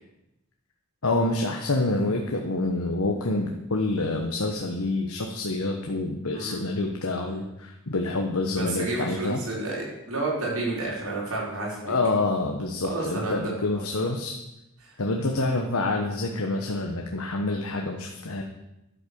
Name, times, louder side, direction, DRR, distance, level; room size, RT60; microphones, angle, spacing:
voice 1, 1.0-9.4 11.8-14.4 15.0-18.4, left 2 dB, 80° left, 2 dB, 1.2 m, -27 dB
voice 2, 8.6-11.9 12.8-13.5 14.8-15.0, right 2 dB, 75° right, -4 dB, 5.1 m, -30 dB
11.5 x 8.5 x 6.9 m, 0.91 s
head